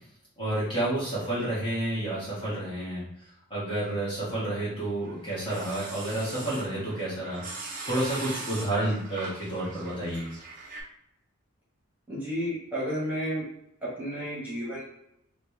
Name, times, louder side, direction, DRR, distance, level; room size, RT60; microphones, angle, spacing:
voice 1, 0.4-3.0 3.5-7.4 7.8-10.3, right 1 dB, 20° left, -8 dB, 1.4 m, -30 dB
sound 1, 4.8-10.8, right 3 dB, 35° right, 0.7 m, -41 dB
voice 2, 12.1-13.4 13.8-14.8, equal, 10° right, -8 dB, 1.3 m, -32 dB
3.2 x 2.9 x 3.2 m, 0.78 s
head